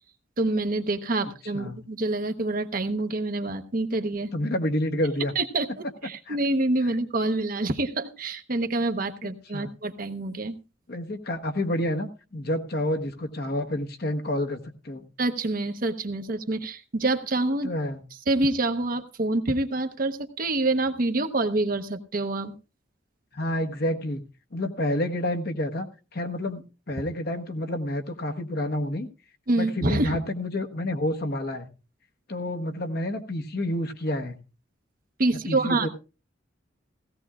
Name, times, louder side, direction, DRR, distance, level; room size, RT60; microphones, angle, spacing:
voice 1, 0.4-4.3 5.4-5.7 6.0-10.6 15.2-17.7 18.3-22.5 29.5-30.2 35.2-35.9, right 2 dB, 50° right, 8 dB, 0.9 m, -26 dB
voice 2, 1.2-1.8 4.3-5.3 6.3-6.4 9.2-9.7 10.9-15.0 17.6-18.0 23.3-24.2 24.5-25.9 26.1-29.1 29.6-31.7 32.3-34.4 35.5-35.9, left 1 dB, 55° left, 6 dB, 1.2 m, -29 dB
17.0 x 15.0 x 2.4 m, 0.32 s
head